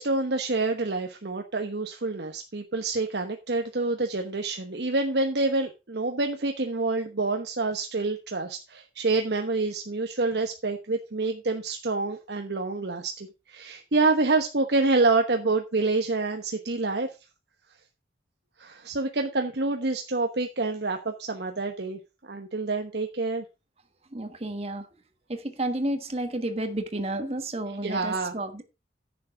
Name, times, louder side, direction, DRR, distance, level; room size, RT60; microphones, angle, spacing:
voice 1, 0.0-17.1 18.6-23.4 27.8-28.3, right 3 dB, 65° right, 1.1 m, -27 dB
voice 2, 24.1-24.9 25.3-28.6, right 1 dB, 35° right, 1.3 m, -31 dB
9.8 x 7.6 x 4.6 m
head